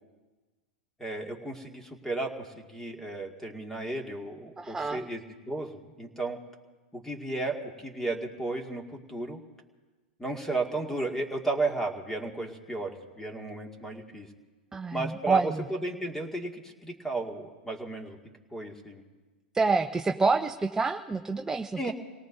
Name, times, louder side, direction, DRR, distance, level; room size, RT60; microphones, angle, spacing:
voice 1, 1.0-5.2 5.5-6.4 6.9-9.4 10.2-14.3 14.9-18.2 18.5-19.0 21.8-21.9, right 2 dB, 10° left, 3 dB, 2.1 m, -34 dB
voice 2, 4.6-5.0 14.7-15.6 19.5-21.9, right 4 dB, 10° right, 5 dB, 0.6 m, -27 dB
29.0 x 18.0 x 2.7 m, 1.3 s
hypercardioid pair, 115°, 5 cm